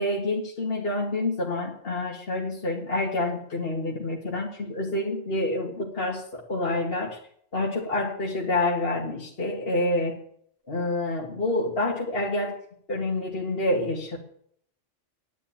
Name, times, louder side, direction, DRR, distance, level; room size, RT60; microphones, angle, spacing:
voice 1, 0.0-7.2 7.5-10.2 10.7-12.6 12.9-14.2, left 2 dB, 55° left, -2 dB, 2.3 m, -28 dB
11.5 x 10.0 x 8.7 m, 0.65 s
omnidirectional pair, 1.2 m